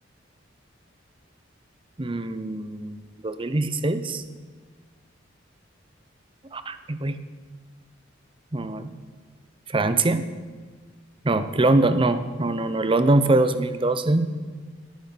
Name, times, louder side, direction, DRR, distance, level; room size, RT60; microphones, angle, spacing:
voice 1, 2.0-3.0 3.2-4.2 6.5-7.2 8.5-8.9 9.7-10.3 11.2-14.3, right 2 dB, 25° right, 11 dB, 0.7 m, -23 dB
17.0 x 9.6 x 4.2 m, 1.5 s
head